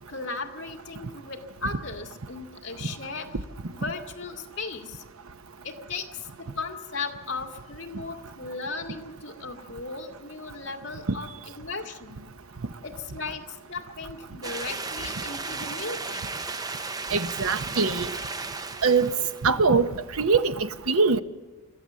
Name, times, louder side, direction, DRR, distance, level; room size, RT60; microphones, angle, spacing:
voice 1, 0.1-3.3 3.7-5.0 5.6-11.3 11.6-12.2 12.8-16.2, left 3 dB, 55° left, 2.1 m, -36 dB
sound 1, 14.4-19.5, right 3 dB, 15° right, 0.6 m, -34 dB
voice 2, 17.1-18.1 18.8-19.1 19.4-19.9 20.2-21.2, right 4 dB, 70° right, 0.9 m, -22 dB
27.5 x 13.0 x 7.5 m
head